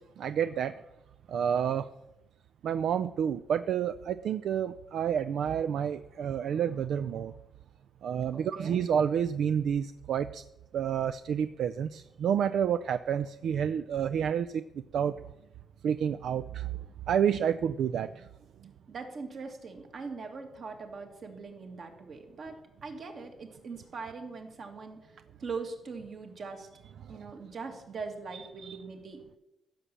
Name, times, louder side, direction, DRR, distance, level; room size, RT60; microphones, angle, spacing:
voice 1, 0.2-0.7 1.3-1.9 2.6-7.3 8.0-10.4 10.7-14.6 14.9-15.1 15.8-16.7 17.1-18.2 28.6-28.8, right 8 dB, 70° right, 12 dB, 0.4 m, -29 dB
voice 2, 8.3-8.8 18.9-26.7 27.1-29.4, right 4 dB, 45° right, 4 dB, 2.1 m, -41 dB
15.0 x 7.4 x 7.0 m, 0.95 s
wide cardioid pair, 170°, 0 cm